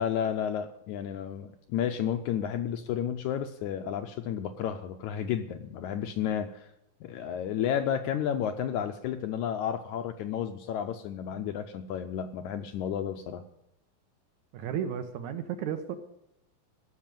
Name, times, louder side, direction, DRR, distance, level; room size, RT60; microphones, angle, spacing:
voice 1, 0.0-6.7 7.0-13.4, left 9 dB, 75° left, 7 dB, 1.9 m, -32 dB
voice 2, 14.5-16.0, right 8 dB, 70° right, 7 dB, 2.1 m, -33 dB
16.0 x 6.6 x 9.0 m, 0.81 s
omnidirectional pair, 4.0 m